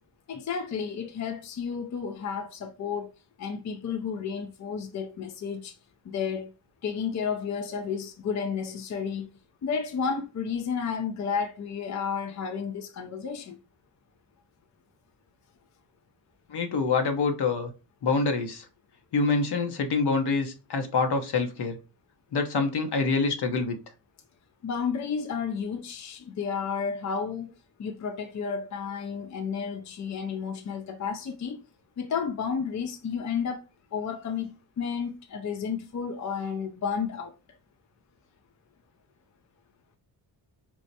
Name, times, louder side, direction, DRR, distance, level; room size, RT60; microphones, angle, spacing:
voice 1, 0.3-3.1 3.4-5.8 6.1-6.5 6.8-9.3 9.6-13.6 24.6-27.5 27.8-31.6 32.0-33.6 33.9-37.3, left 6 dB, 40° left, 0.5 m, -32 dB
voice 2, 16.5-17.7 18.0-18.6 19.1-21.8 22.3-23.8, left 4 dB, 60° left, 0.9 m, -26 dB
4.5 x 2.1 x 2.7 m
cardioid pair, 65°, 44 cm